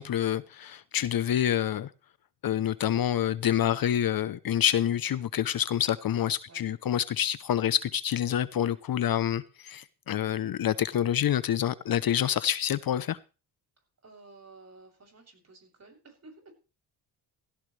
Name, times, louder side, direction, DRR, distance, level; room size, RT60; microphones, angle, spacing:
voice 1, 0.0-1.9 2.4-13.2, left 10 dB, 55° left, 0.8 m, -27 dB
voice 2, 14.0-16.5, right 3 dB, 35° right, 7.7 m, -53 dB
16.5 x 16.5 x 3.3 m
cardioid pair, 85°, 42 cm